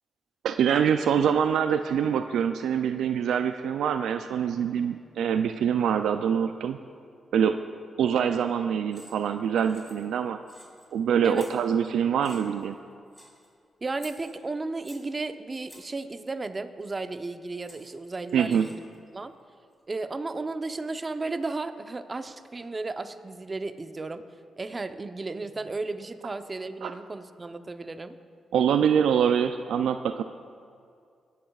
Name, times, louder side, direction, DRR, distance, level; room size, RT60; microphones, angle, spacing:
voice 1, 0.4-6.8 7.3-7.6 8.0-10.4 10.9-12.8 18.3-18.7 26.8-26.9 28.5-30.2, right 8 dB, 85° right, 9 dB, 0.3 m, -24 dB
sound 1, 8.9-9.3 9.6-10.2 10.5-10.9 11.3-11.9 12.2-12.7 13.1-13.5 14.0-15.1 15.7-16.0 17.2-17.3 17.7-19.0, equal, ahead, 3.0 m, -51 dB
voice 2, 13.8-18.7 19.1-19.3 19.9-24.2 24.6-28.2, right 3 dB, 35° right, 9 dB, 0.7 m, -34 dB
19.5 x 10.0 x 2.4 m, 2.3 s
supercardioid pair, 60°, 0 cm